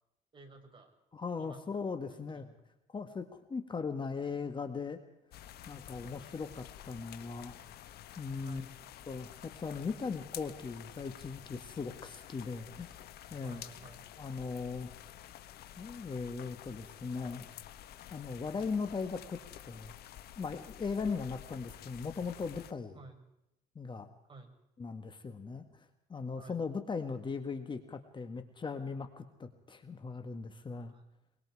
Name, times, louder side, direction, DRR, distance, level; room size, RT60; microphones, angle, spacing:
voice 1, 0.3-0.9 1.4-1.8 2.1-2.6 8.4-8.7 13.4-14.1 22.9-23.2 24.2-24.5 26.4-26.6 30.9-31.0, right 3 dB, 30° right, 3 dB, 6.1 m, -53 dB
voice 2, 1.1-2.5 2.9-5.0 5.7-7.8 8.2-8.7 9.1-13.0 13.3-13.6 14.2-14.9 15.8-17.5 18.1-19.9 20.4-22.9 23.8-24.1 24.8-30.9, left 5 dB, 30° left, 8 dB, 1.8 m, -39 dB
sound 1, 5.3-22.7, left 11 dB, 70° left, 1.4 m, -50 dB
24.0 x 23.0 x 4.9 m, 0.84 s
cardioid pair, 110°, 17 cm